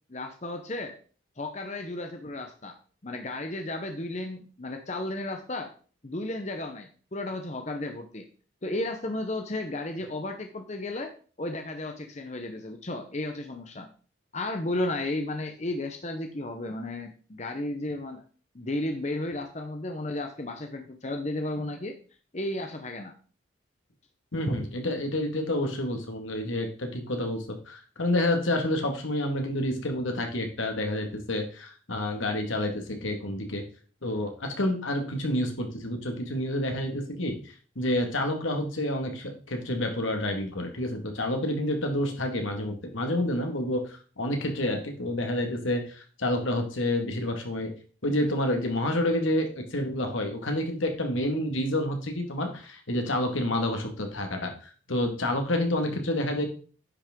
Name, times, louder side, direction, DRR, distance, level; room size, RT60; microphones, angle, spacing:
voice 1, 0.1-0.9 1.4-2.7 3.0-5.7 6.0-8.2 8.6-13.9 14.3-18.2 18.5-22.0 22.3-23.1, left 2 dB, 35° left, 5 dB, 0.9 m, -33 dB
voice 2, 24.3-33.6 34.0-37.4 37.8-43.8 44.2-47.7 48.0-56.5, left 1 dB, 85° left, 3 dB, 2.0 m, -29 dB
9.7 x 6.2 x 3.7 m, 0.39 s
head